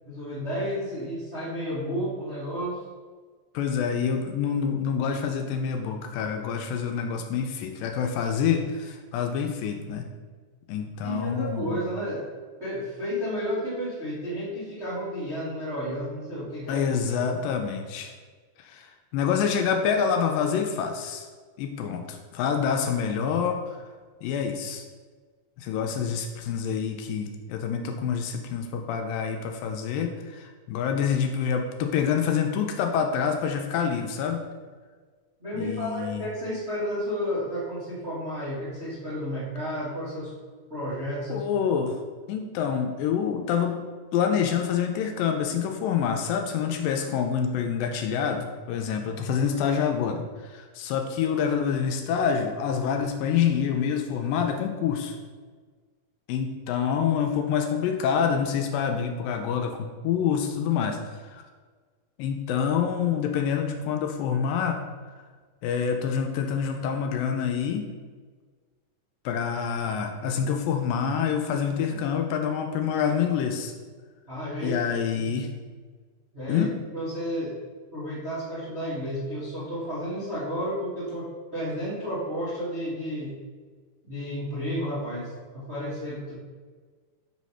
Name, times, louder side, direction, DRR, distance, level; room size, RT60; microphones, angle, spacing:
voice 1, 0.0-2.8 11.0-12.3 12.6-16.8 35.4-40.4 40.7-41.4 74.3-74.8 75.1-75.2 76.3-76.6 76.9-77.6 77.9-83.3 84.0-86.3, equal, 55° right, -11 dB, 0.7 m, -32 dB
voice 2, 3.5-10.0 10.7-11.8 16.7-18.1 18.6-21.3 21.6-23.8 24.2-24.8 25.6-34.4 35.6-36.2 41.3-42.0 42.3-43.8 44.1-55.2 56.3-61.4 62.2-65.1 65.6-67.9 69.3-73.7 74.6-75.5 76.5-76.7, left 7 dB, 80° left, 4 dB, 2.2 m, -27 dB
5.6 x 3.1 x 5.5 m, 1.5 s
omnidirectional pair, 4.1 m